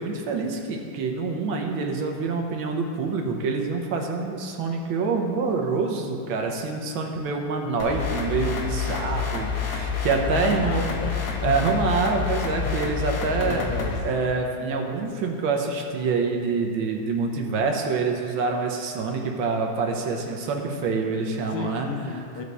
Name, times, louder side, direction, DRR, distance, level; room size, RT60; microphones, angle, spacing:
voice 1, 0.0-10.8 11.4-13.6 14.0-21.9, right 4 dB, 70° right, 2 dB, 1.6 m, -26 dB
sound 1, 7.8-14.0, left 6 dB, 55° left, 1.3 m, -28 dB
voice 2, 10.3-11.2 11.5-11.6 12.6-12.9 13.5-14.0 14.3-14.4 21.5-22.4, left 5 dB, 90° left, 4 dB, 1.7 m, -33 dB
15.0 x 5.1 x 4.0 m, 2.6 s
omnidirectional pair, 2.4 m